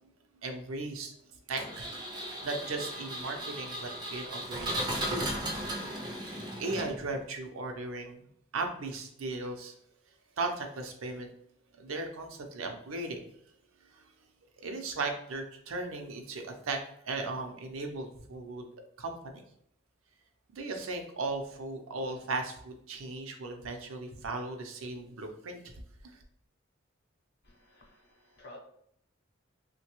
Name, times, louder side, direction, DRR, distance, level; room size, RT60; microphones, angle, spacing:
voice 1, 0.4-1.1 1.5-5.3 6.2-8.2 8.5-9.7 10.4-11.3 11.7-13.2 14.6-16.8 17.1-18.7 19.0-19.4 20.5-25.7 26.0-26.2, right 3 dB, 75° right, 4 dB, 0.5 m, -37 dB
Engine, 1.6-7.2, right 1 dB, 20° right, 0.4 m, -36 dB
voice 2, 27.4-28.6, left 2 dB, 50° left, 0 dB, 0.7 m, -53 dB
3.1 x 2.2 x 2.9 m, 0.68 s
head